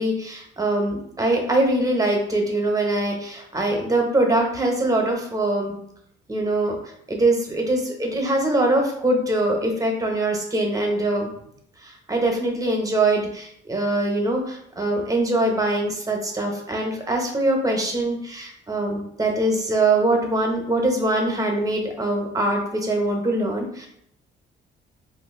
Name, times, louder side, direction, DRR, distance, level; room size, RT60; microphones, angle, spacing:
voice 1, 0.0-5.7 6.3-6.8 7.1-11.3 11.8-23.9, right 2 dB, 15° right, 1 dB, 0.8 m, -23 dB
2.7 x 2.6 x 3.6 m, 0.70 s
cardioid pair, 90°, 20 cm